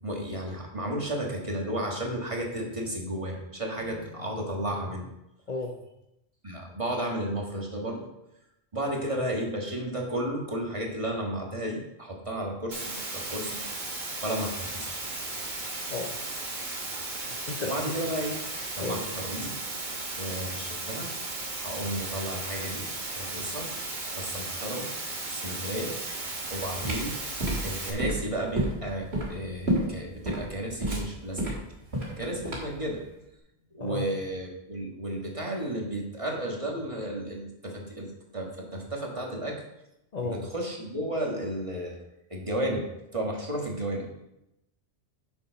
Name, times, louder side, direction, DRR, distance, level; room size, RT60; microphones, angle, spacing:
voice 1, 0.0-5.1 6.4-8.1 8.7-13.5 14.2-14.9 17.6-18.4 18.8-19.6 20.1-21.1 21.6-22.9 23.1-23.7 24.1-24.9 25.3-26.0 26.5-27.1 27.6-31.4 32.2-33.0 33.7-39.6 40.2-42.0 42.3-42.8 43.1-44.1, right 1 dB, 30° right, -1 dB, 1.7 m, -33 dB
Water, 12.7-27.9, right 2 dB, 45° right, 1.6 m, -35 dB
voice 2, 17.1-17.7 18.8-19.0 33.8-34.0 40.1-40.4, left 3 dB, 45° left, 3 dB, 0.7 m, -33 dB
sound 1, 26.4-32.9, right 1 dB, 70° right, 2.7 m, -30 dB
7.1 x 6.9 x 5.1 m, 0.87 s
omnidirectional pair, 1.1 m